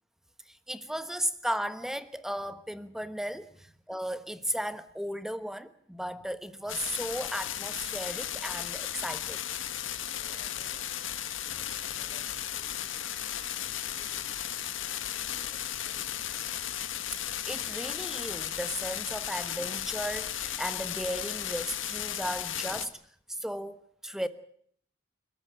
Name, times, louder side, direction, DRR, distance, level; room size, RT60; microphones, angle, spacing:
voice 1, 0.5-9.4 17.2-23.0 23.3-24.3, equal, ahead, 1.2 m, -35 dB
sound 1, 6.7-22.9, left 11 dB, 90° left, 1.7 m, -35 dB
voice 2, 10.1-11.2 11.5-13.0 13.5-14.6 15.2-16.4, right 1 dB, 35° right, 6.2 m, -59 dB
29.0 x 14.0 x 8.9 m
head